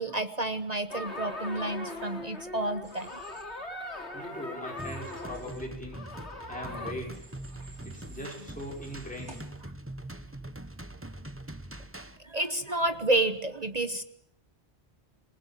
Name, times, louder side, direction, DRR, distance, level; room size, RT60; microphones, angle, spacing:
voice 1, 0.0-3.2 12.2-14.0, right 2 dB, 40° right, 10 dB, 1.2 m, -30 dB
sound 1, 0.9-6.9, left 2 dB, 80° left, 3.6 m, -40 dB
Human voice / Train, 2.8-3.4 4.8-5.6 7.1-9.4, right 2 dB, 90° right, 3.9 m, -53 dB
voice 2, 4.1-6.0 6.5-7.2 7.8-9.4, equal, 5° left, -2 dB, 5.9 m, -40 dB
sound 2, 4.8-12.2, right 1 dB, 10° right, 1.1 m, -43 dB
27.0 x 19.5 x 7.4 m, 0.74 s
omnidirectional pair, 1.1 m